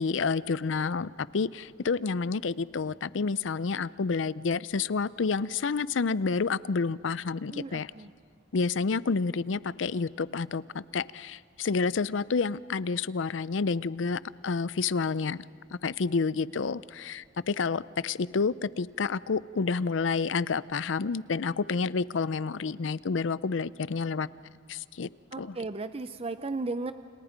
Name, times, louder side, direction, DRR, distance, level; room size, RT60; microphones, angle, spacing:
voice 1, 0.0-7.9 8.5-15.4 15.7-24.3 24.7-25.1 25.4-25.6, left 4 dB, 70° left, 19 dB, 0.5 m, -29 dB
voice 2, 7.5-8.1 25.3-26.9, right 3 dB, 30° right, 11 dB, 0.5 m, -35 dB
29.5 x 28.0 x 5.2 m, 2.2 s
head